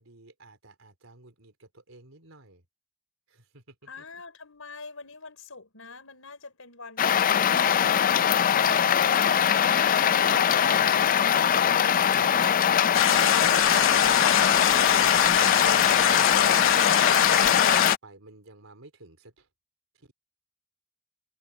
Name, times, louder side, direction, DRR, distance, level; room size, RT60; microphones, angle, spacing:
voice 1, 0.0-2.6 3.3-4.0 10.6-10.9 11.9-12.4 14.4-14.7 15.2-16.8 17.1-19.5 20.0-20.1, right 2 dB, 80° right, 4.2 m, -52 dB
voice 2, 3.9-8.4 8.7-11.6, left 4 dB, 85° left, 4.5 m, -44 dB
sound 1, 7.0-18.0, left 8 dB, 40° left, 0.4 m, -22 dB
sound 2, 12.9-18.0, left 9 dB, 65° left, 0.9 m, -24 dB
head